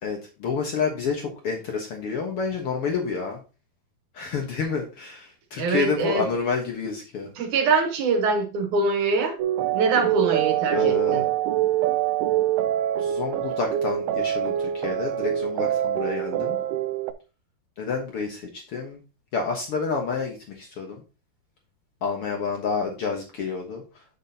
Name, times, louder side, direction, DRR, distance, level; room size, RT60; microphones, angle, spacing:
voice 1, 0.0-3.4 4.1-7.3 10.7-11.3 13.0-16.6 17.8-19.0 19.3-21.0 22.0-23.8, left 5 dB, 80° left, 1.2 m, -29 dB
voice 2, 5.6-6.2 7.4-9.4 9.7-11.2, right 4 dB, 60° right, 2.3 m, -23 dB
sound 1, 9.4-17.1, right 12 dB, 80° right, 2.5 m, -25 dB
8.1 x 7.5 x 2.8 m
omnidirectional pair, 4.5 m